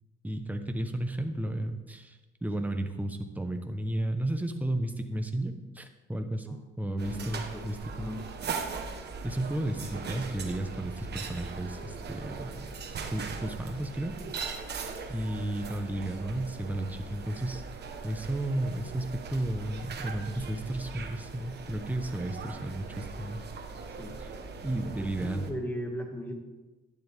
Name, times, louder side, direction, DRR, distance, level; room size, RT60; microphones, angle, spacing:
voice 1, 0.2-8.1 9.2-12.7 13.1-14.2 15.1-17.6 18.0-23.4 24.6-25.4, right 1 dB, 10° right, 6 dB, 1.1 m, -33 dB
voice 2, 6.9-7.6 7.9-8.2 23.7-24.2 25.2-26.3, equal, 10° left, 2 dB, 2.1 m, -38 dB
sound 1, 7.0-25.5, right 4 dB, 55° right, 1.3 m, -40 dB
11.5 x 10.0 x 3.6 m, 1.2 s
cardioid pair, 90°, 20 cm